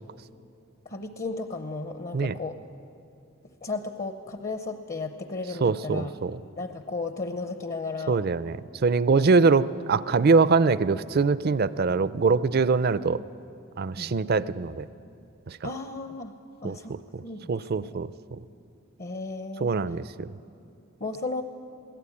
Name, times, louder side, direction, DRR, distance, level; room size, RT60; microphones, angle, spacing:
voice 1, 0.9-2.6 3.6-6.1 6.6-8.2 14.0-14.2 15.6-16.3 16.6-16.9 17.2-17.9 19.0-19.7 21.0-21.4, left 3 dB, 40° left, 7 dB, 0.8 m, -34 dB
voice 2, 5.6-6.4 8.1-13.2 13.8-14.9 16.6-16.8 17.1-17.2 17.5-18.1 19.6-20.3, right 4 dB, 50° right, 16 dB, 0.5 m, -23 dB
22.5 x 17.0 x 8.5 m, 2.7 s
head